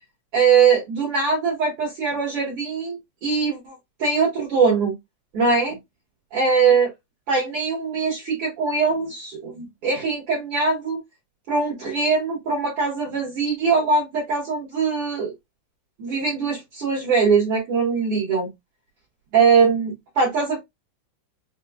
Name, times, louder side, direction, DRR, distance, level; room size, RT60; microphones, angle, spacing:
voice 1, 0.3-5.0 5.3-5.8 6.3-6.9 7.3-11.0 11.5-15.3 16.0-18.5 19.3-20.6, right 5 dB, 60° right, 1.6 m, -21 dB
6.0 x 2.2 x 2.2 m
omnidirectional pair, 3.8 m